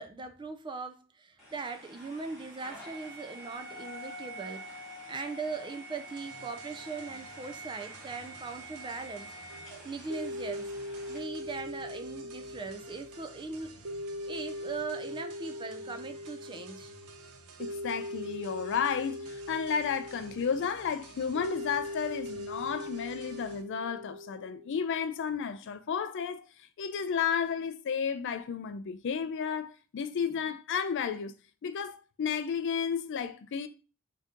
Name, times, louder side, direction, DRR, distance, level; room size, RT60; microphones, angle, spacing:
voice 1, 0.0-4.7 5.1-9.3 9.8-10.7 11.1-13.8 14.3-16.9, right 4 dB, 20° right, 0.4 m, -40 dB
sound 1, 1.4-11.2, right 1 dB, ahead, 1.7 m, -46 dB
sound 2, 6.2-23.6, right 4 dB, 90° right, 0.6 m, -53 dB
sound 3, 9.5-24.9, left 1 dB, 55° right, 0.8 m, -41 dB
voice 2, 17.6-26.5 26.8-31.3 31.6-33.7, left 7 dB, 55° left, 0.4 m, -32 dB
3.7 x 2.8 x 3.5 m
head